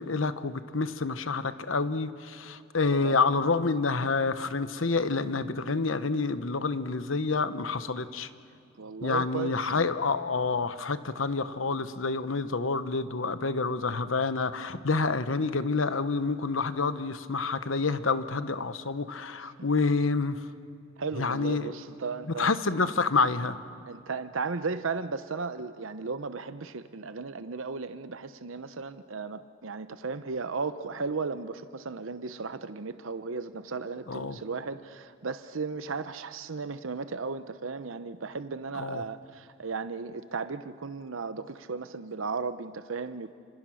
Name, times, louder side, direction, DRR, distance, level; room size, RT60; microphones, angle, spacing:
voice 1, 0.0-8.3 9.0-20.4 21.2-21.7 22.4-23.6 34.1-34.4 38.7-39.0, left 4 dB, 80° left, 12 dB, 1.1 m, -28 dB
voice 2, 2.9-3.2 8.8-9.7 21.0-22.5 23.8-43.3, right 4 dB, 90° right, 11 dB, 0.8 m, -35 dB
30.0 x 26.5 x 6.4 m, 2.4 s
head